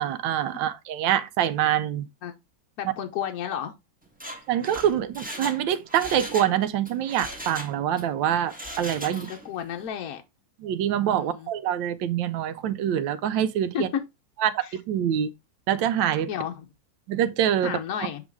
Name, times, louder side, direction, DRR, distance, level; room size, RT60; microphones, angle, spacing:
voice 1, 0.0-2.1 4.5-9.3 10.6-13.9 14.4-15.3 15.7-16.3 17.1-17.8, right 10 dB, 75° right, 1.3 m, -25 dB
voice 2, 2.8-3.8 9.1-10.2 11.2-11.5 13.7-14.0 14.6-14.8 16.3-16.7 17.6-18.2, left 9 dB, 60° left, 1.0 m, -32 dB
Mechanisms, 4.1-6.5 6.8-8.1 8.4-9.5 9.8-9.9, equal, 5° right, 0.8 m, -38 dB
7.0 x 3.9 x 3.5 m
omnidirectional pair, 2.1 m